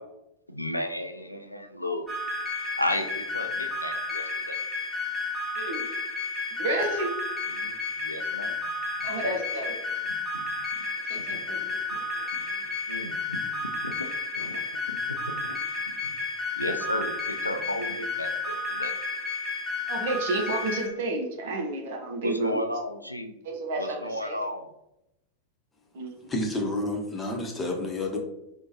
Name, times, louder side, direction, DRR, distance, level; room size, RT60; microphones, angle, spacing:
voice 1, 0.5-2.1 2.8-4.6 7.5-8.7 9.0-9.1 12.4-13.4 13.8-14.1 14.3-15.0 15.4-15.5 16.0-16.1 16.6-18.9 22.2-23.3 23.8-24.7, left 1 dB, 85° left, 5 dB, 0.3 m, -34 dB
sound 1, 2.1-20.9, left 3 dB, 5° right, 1.0 m, -32 dB
voice 2, 5.6-5.9 6.6-7.1 9.0-9.8 11.0-11.8 19.9-22.6 23.4-24.5 25.9-26.2, right 2 dB, 55° right, 3 dB, 0.6 m, -31 dB
voice 3, 26.3-28.2, left 2 dB, 15° left, 1 dB, 0.7 m, -29 dB
4.4 x 2.1 x 2.8 m, 0.86 s
figure-of-eight pair, 90°, 0 cm